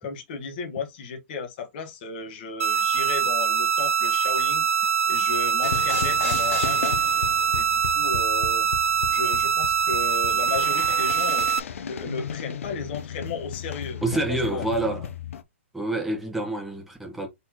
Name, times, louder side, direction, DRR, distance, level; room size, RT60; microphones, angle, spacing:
voice 1, 0.0-4.7 5.1-7.0 7.5-8.7 9.1-11.5 11.8-14.0 14.5-14.7, left 5 dB, 45° left, 1.4 m, -34 dB
sound 1, 2.6-11.6, right 7 dB, 85° right, 0.5 m, -23 dB
sound 2, 5.6-15.4, left 8 dB, 75° left, 0.7 m, -35 dB
voice 2, 14.0-15.1 15.7-17.3, right 2 dB, 5° right, 1.4 m, -27 dB
4.1 x 4.0 x 2.9 m
hypercardioid pair, 150°, 7 cm